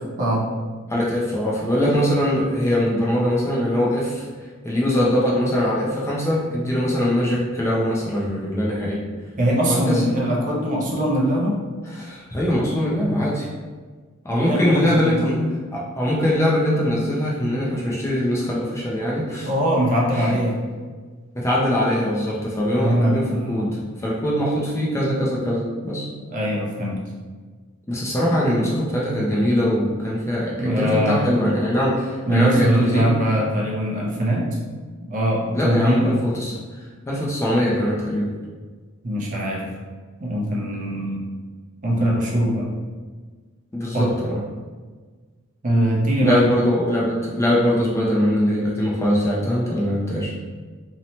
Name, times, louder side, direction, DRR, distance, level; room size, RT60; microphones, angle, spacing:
voice 1, 0.2-0.5 9.4-11.6 14.3-15.1 19.5-20.6 22.7-23.6 26.3-27.0 30.6-31.3 32.3-34.5 35.0-36.2 39.0-39.7 40.2-41.3 41.8-42.8 43.9-44.1 45.6-46.5, equal, 40° right, -3 dB, 0.5 m, -21 dB
voice 2, 0.9-9.0 9.7-10.0 11.9-13.5 14.2-15.4 15.7-19.5 20.1-20.4 21.3-23.7 24.0-26.1 27.9-33.1 35.5-36.5 37.1-38.3 43.7-44.4 46.2-50.3, equal, 15° left, -5 dB, 0.4 m, -22 dB
2.7 x 2.1 x 2.8 m, 1.4 s
head